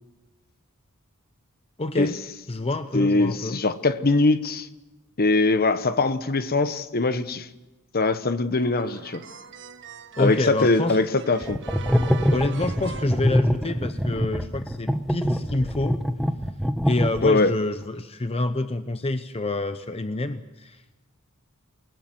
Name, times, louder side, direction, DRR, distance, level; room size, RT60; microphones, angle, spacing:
voice 1, 1.8-2.2 2.5-3.6 10.2-11.0 12.3-16.0 16.9-20.8, left 2 dB, 25° left, 0.8 m, -27 dB
voice 2, 2.9-4.7 5.2-7.5 7.9-9.2 10.2-11.6 17.2-17.5, left 3 dB, 45° left, 1.1 m, -22 dB
sound 1, 8.6-14.0, right 5 dB, 55° right, 1.5 m, -41 dB
sound 2, 11.4-17.5, equal, ahead, 1.1 m, -24 dB
28.5 x 19.0 x 7.9 m
head